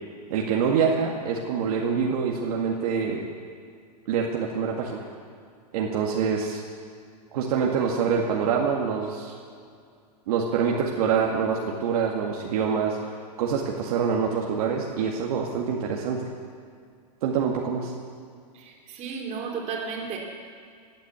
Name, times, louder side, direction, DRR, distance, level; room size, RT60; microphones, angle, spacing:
voice 1, 0.3-3.3 4.1-5.1 5.7-6.6 7.3-9.3 10.3-13.1 13.4-16.3 17.2-17.9, right 6 dB, 65° right, -1 dB, 2.0 m, -25 dB
voice 2, 18.5-20.2, right 5 dB, 35° right, -1 dB, 3.4 m, -33 dB
16.5 x 9.1 x 8.4 m, 2.2 s
hypercardioid pair, 130°, 21 cm